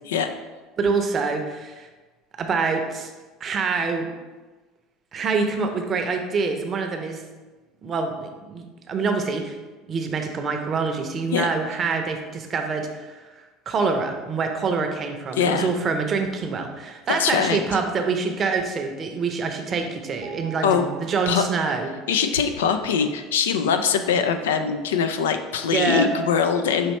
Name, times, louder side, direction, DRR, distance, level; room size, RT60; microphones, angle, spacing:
voice 1, 0.8-1.9 2.4-3.1 3.4-4.2 5.1-7.2 7.8-9.6 9.9-13.3 13.7-21.9 25.7-26.1, right 4 dB, 40° right, 5 dB, 0.6 m, -25 dB
voice 2, 15.4-15.7 17.1-17.6 20.6-20.8 21.3-21.4 22.1-26.9, left 6 dB, 85° left, 8 dB, 0.3 m, -22 dB
sound 1, 20.2-22.5, right 11 dB, 75° right, 0.7 m, -45 dB
5.5 x 3.0 x 3.0 m, 1.3 s
hypercardioid pair, 80°, 0 cm